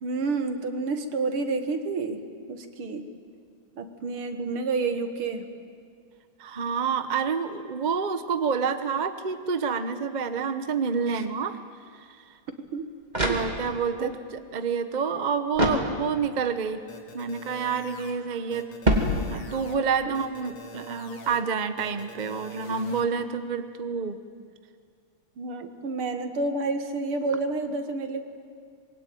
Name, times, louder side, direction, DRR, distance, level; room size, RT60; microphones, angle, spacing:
voice 1, 0.0-2.2 2.5-3.1 3.8-5.5 11.1-11.2 12.7-12.9 14.0-14.1 20.1-20.2 25.4-28.2, right 3 dB, 75° right, 7 dB, 2.6 m, -29 dB
voice 2, 6.4-11.6 11.9-12.3 13.2-16.8 17.1-18.7 19.0-24.2, right 6 dB, 35° right, 10 dB, 0.7 m, -28 dB
sound 1, 12.7-14.0 15.5-16.4 18.8-19.7, equal, 20° right, 2.6 m, -26 dB
sound 2, 16.9-18.1 18.5-19.8 20.1-21.4 21.8-23.0, left 1 dB, 80° left, 3.3 m, -44 dB
25.5 x 22.0 x 9.3 m, 2.1 s
omnidirectional pair, 2.4 m